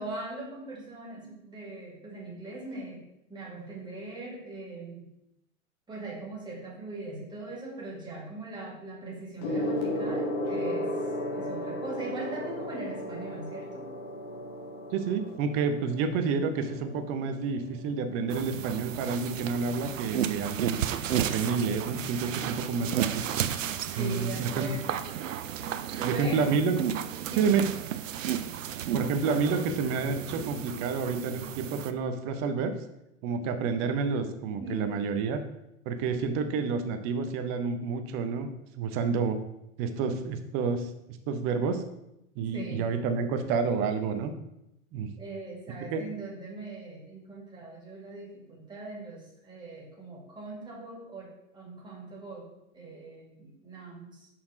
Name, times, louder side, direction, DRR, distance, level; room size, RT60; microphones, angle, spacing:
voice 1, 0.0-3.0 3.3-5.1 5.9-13.9 23.9-25.0 25.9-26.5 27.2-27.5 34.6-35.1 42.5-42.9 45.2-54.3, right 2 dB, 10° right, -4 dB, 2.3 m, -40 dB
Gong, 9.4-19.2 20.1-20.4, left 1 dB, 45° left, 1.5 m, -35 dB
voice 2, 14.9-20.8 21.2-23.2 23.9-24.7 26.0-26.8 27.4-27.7 28.9-32.7 33.2-35.4 35.9-39.4 39.8-40.9 41.3-41.8 42.4-44.3 44.9-45.1 45.9-46.0, right 5 dB, 35° right, 8 dB, 0.7 m, -29 dB
sound 1, 18.3-31.9, right 9 dB, 65° right, 0.6 m, -33 dB
5.8 x 4.3 x 5.0 m, 0.85 s
figure-of-eight pair, 95°, 41 cm